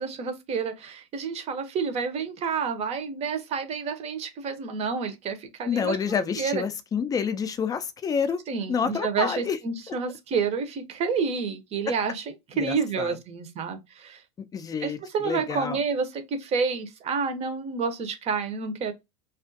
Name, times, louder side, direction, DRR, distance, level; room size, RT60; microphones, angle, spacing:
voice 1, 0.0-6.0 6.4-6.6 8.5-14.2 14.8-18.9, right 5 dB, 35° right, 0.7 m, -29 dB
voice 2, 5.7-8.4 8.7-9.6 9.9-10.0 12.5-13.2 14.5-15.0 15.2-15.8, left 6 dB, 20° left, 0.4 m, -28 dB
2.4 x 2.4 x 2.5 m
hypercardioid pair, 95°, 19 cm